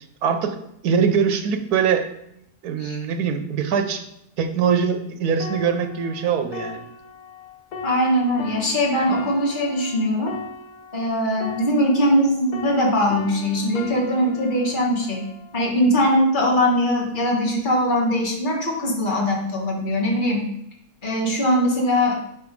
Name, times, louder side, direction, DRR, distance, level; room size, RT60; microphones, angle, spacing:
voice 1, 0.2-0.6 0.8-2.1 2.6-4.0 4.4-6.8, right 6 dB, 80° right, 7 dB, 1.3 m, -22 dB
sound 1, 5.4-12.3 12.5-16.1 16.7-17.0, left 4 dB, 80° left, 1.4 m, -38 dB
voice 2, 7.8-10.3 10.9-15.3 15.5-20.5 21.0-22.2, equal, 35° left, -1 dB, 1.6 m, -21 dB
6.2 x 5.4 x 4.7 m, 0.77 s
omnidirectional pair, 1.6 m